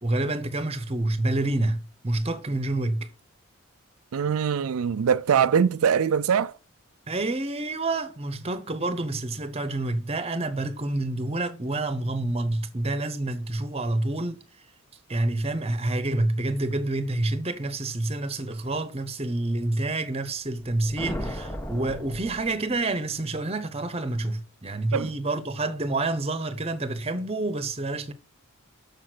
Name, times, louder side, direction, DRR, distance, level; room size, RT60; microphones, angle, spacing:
voice 1, 0.0-3.1 7.1-14.4 15.1-28.1, right 2 dB, 30° right, 1.0 m, -28 dB
voice 2, 4.1-6.5 24.9-25.1, right 7 dB, 85° right, 0.4 m, -22 dB
sound 1, 20.5-23.0, equal, 10° left, 1.4 m, -36 dB
6.8 x 6.4 x 6.1 m
head